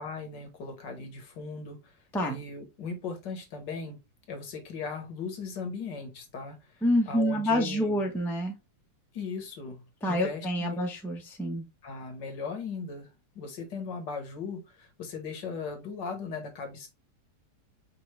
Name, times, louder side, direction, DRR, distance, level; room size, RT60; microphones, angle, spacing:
voice 1, 0.0-4.0 4.3-8.1 9.1-10.8 11.8-13.1 13.4-16.9, left 4 dB, 80° left, 1.8 m, -38 dB
voice 2, 6.8-8.6 10.0-11.7, equal, ahead, 0.5 m, -27 dB
5.4 x 2.6 x 3.2 m
omnidirectional pair, 1.9 m